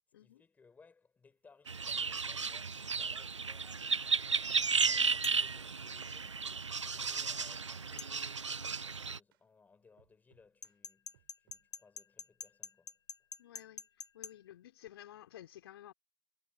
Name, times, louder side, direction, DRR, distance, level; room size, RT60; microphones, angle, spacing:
voice 1, 0.2-4.2 4.7-13.0, left 4 dB, 10° left, 6.7 m, -64 dB
sound 1, 1.3-2.2 2.6-2.8 3.1-4.2 4.6-4.8 5.3-5.5 5.8-6.3 6.6-6.8 7.3-7.5 8.0-8.1 8.5-9.5 10.0-10.8 11.1-11.7, right 15 dB, 50° right, 5.7 m, -71 dB
sound 2, 1.7-9.2, right 5 dB, 85° right, 0.6 m, -34 dB
sound 3, 5.2-5.5 8.0-8.1 10.6-14.3, left 5 dB, 75° left, 1.9 m, -46 dB
voice 2, 13.4-13.9 14.1-15.9, left 12 dB, 55° left, 3.0 m, -53 dB
figure-of-eight pair, 115°, 15 cm